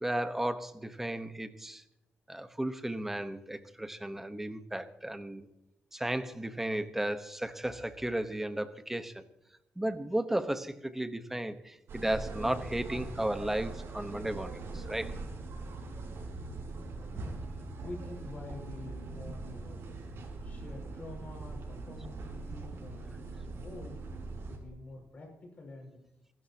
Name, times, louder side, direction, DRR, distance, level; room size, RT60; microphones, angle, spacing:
voice 1, 0.0-1.8 2.3-5.5 5.9-9.2 9.8-15.1, right 1 dB, 5° right, 10 dB, 1.1 m, -34 dB
sound 1, 11.9-24.6, right 3 dB, 75° right, 4.7 m, -41 dB
voice 2, 17.8-20.1 20.4-24.0 24.5-26.0, left 2 dB, 35° left, 1 dB, 5.9 m, -47 dB
27.5 x 12.5 x 2.9 m, 0.88 s
wide cardioid pair, 145°, 4 cm